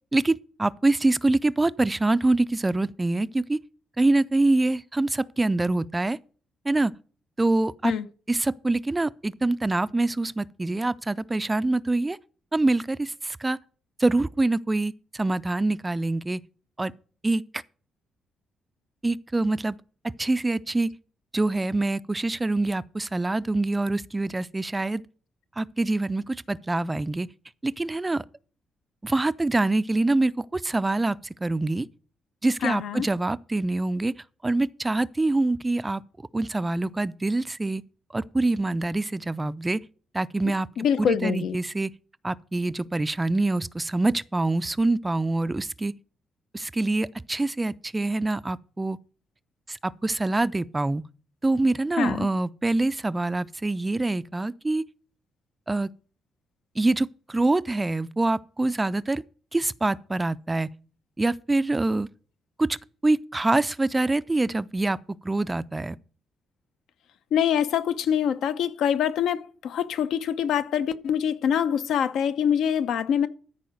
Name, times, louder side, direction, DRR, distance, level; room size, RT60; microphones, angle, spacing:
voice 1, 0.1-3.6 4.0-6.2 6.7-6.9 7.4-7.9 8.3-12.2 12.5-13.6 14.0-16.4 16.8-16.9 17.2-17.6 19.0-19.8 20.0-20.9 21.3-25.0 25.6-27.3 27.6-28.2 29.0-31.9 32.4-34.1 34.4-36.0 36.3-37.8 38.1-39.8 40.1-40.7 41.0-41.9 42.2-45.9 46.5-49.0 49.7-51.0 51.4-54.8 55.7-55.9 56.8-59.2 59.5-60.7 61.2-62.1 62.6-62.8 63.0-65.0 65.2-66.0, right 2 dB, 15° right, 0.4 m, -25 dB
voice 2, 32.6-33.1 40.8-41.6 52.0-52.3 67.3-73.3, left 8 dB, 75° left, 0.8 m, -25 dB
13.5 x 4.8 x 6.4 m
cardioid pair, 135°, 0 cm